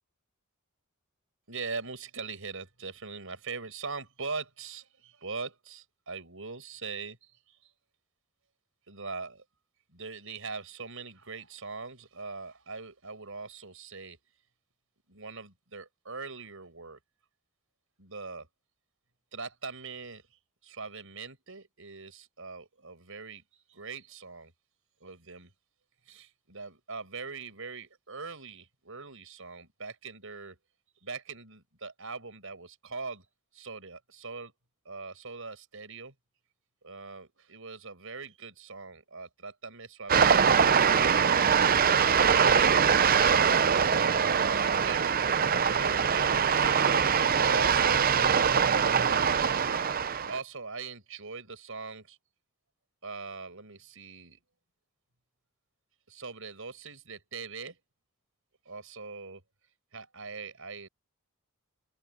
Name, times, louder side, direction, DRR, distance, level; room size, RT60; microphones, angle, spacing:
voice 1, 1.5-7.7 8.9-9.4 9.9-14.2 15.1-17.0 18.0-18.5 19.3-20.2 20.6-24.5 25.0-25.5 26.1-30.6 31.0-33.3 33.5-34.5 34.8-36.1 36.8-41.7 42.1-46.9 47.5-48.6 49.0-49.4 50.3-52.2 53.0-54.4 56.1-57.8 58.7-59.4 59.9-60.9, right 4 dB, 65° right, 7.8 m, -41 dB
sound 1, 40.1-50.4, right 7 dB, 45° right, 0.7 m, -23 dB
open air
head